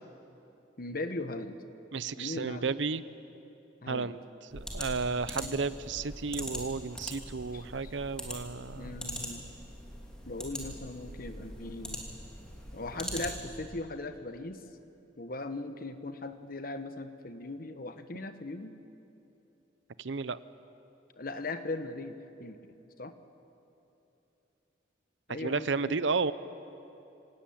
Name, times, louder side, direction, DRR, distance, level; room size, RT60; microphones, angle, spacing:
voice 1, 0.8-1.6 2.2-2.7 3.8-4.2 5.3-5.6 7.5-7.9 8.7-9.4 10.3-12.0 12.7-14.6 15.2-18.7 21.2-22.6 23.0-23.1 25.3-26.0, left 2 dB, 50° left, 9 dB, 1.2 m, -39 dB
voice 2, 1.9-3.0 3.9-4.2 4.5-9.0 20.0-20.4 25.4-26.3, right 4 dB, 75° right, 15 dB, 0.7 m, -32 dB
sound 1, 4.5-13.7, equal, 5° left, 2.9 m, -42 dB
27.0 x 18.0 x 8.7 m, 2.9 s
head